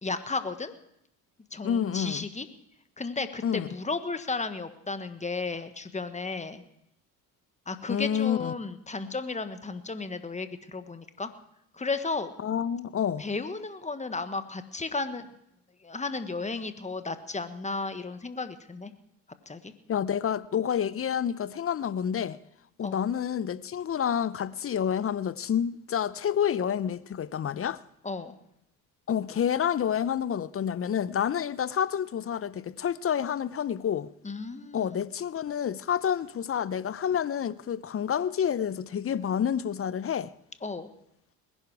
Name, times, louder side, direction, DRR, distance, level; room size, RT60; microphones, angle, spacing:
voice 1, 0.0-0.7 1.5-2.5 3.0-6.6 7.7-11.3 11.7-12.3 13.2-15.3 15.8-18.9 19.5-19.7 22.8-23.0 28.0-28.4 34.2-35.0 40.6-40.9, left 3 dB, 15° left, 1.4 m, -34 dB
voice 2, 1.6-2.3 3.4-3.7 7.9-8.5 12.4-13.3 19.9-22.4 22.8-27.8 29.1-34.1 34.7-40.3, left 8 dB, 30° left, 0.6 m, -29 dB
20.0 x 11.0 x 4.8 m
hypercardioid pair, 60°, 43 cm